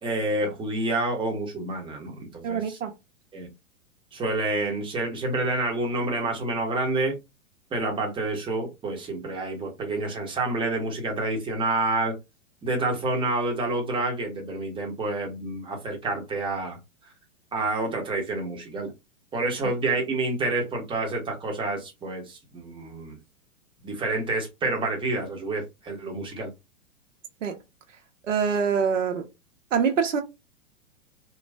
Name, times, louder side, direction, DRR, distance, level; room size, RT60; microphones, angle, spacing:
voice 1, 0.0-2.8 3.3-3.5 4.1-7.2 7.7-12.1 12.6-16.8 17.5-18.9 19.3-23.1 23.8-26.5, right 2 dB, 15° right, 0.9 m, -28 dB
voice 2, 2.4-2.9 27.4-27.6 28.3-29.3 29.7-30.2, right 6 dB, 75° right, 0.7 m, -24 dB
3.0 x 2.3 x 2.3 m
figure-of-eight pair, 110°, 38 cm